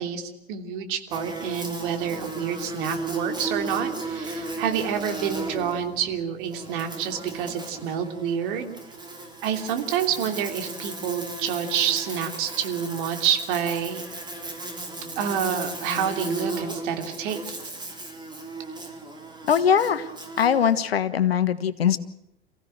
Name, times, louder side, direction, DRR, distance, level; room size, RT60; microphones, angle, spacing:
voice 1, 0.0-8.8 9.4-14.0 15.2-17.6, right 8 dB, 55° right, 6 dB, 3.1 m, -28 dB
Buzz, 1.1-20.9, right 2 dB, 15° right, 4.7 m, -35 dB
voice 2, 19.5-20.1 20.4-22.0, left 8 dB, 70° left, 13 dB, 1.4 m, -21 dB
28.5 x 15.5 x 7.7 m, 0.86 s
figure-of-eight pair, 80°, 31 cm